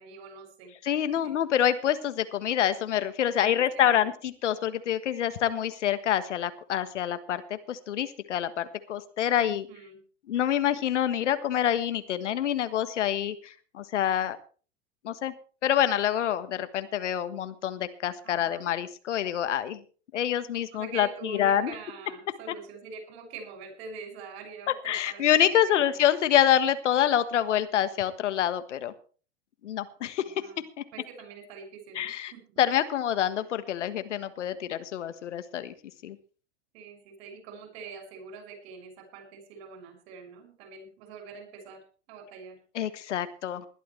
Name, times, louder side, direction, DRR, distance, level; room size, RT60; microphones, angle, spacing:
voice 1, 0.0-0.7 1.1-1.3 3.4-4.1 9.4-10.0 18.2-18.7 20.7-25.2 25.7-26.0 30.2-30.6 30.9-32.6 36.7-41.8 42.1-42.6, right 5 dB, 55° right, 5 dB, 6.9 m, -45 dB
voice 2, 0.8-9.7 10.3-14.4 15.0-15.3 15.6-19.8 20.1-21.7 24.8-28.9 29.6-30.3 30.8-30.9 31.9-32.3 32.6-35.7 36.0-36.2 42.7-43.6, left 10 dB, 70° left, 12 dB, 1.5 m, -26 dB
20.5 x 12.0 x 3.3 m, 0.39 s
hypercardioid pair, 100°, 37 cm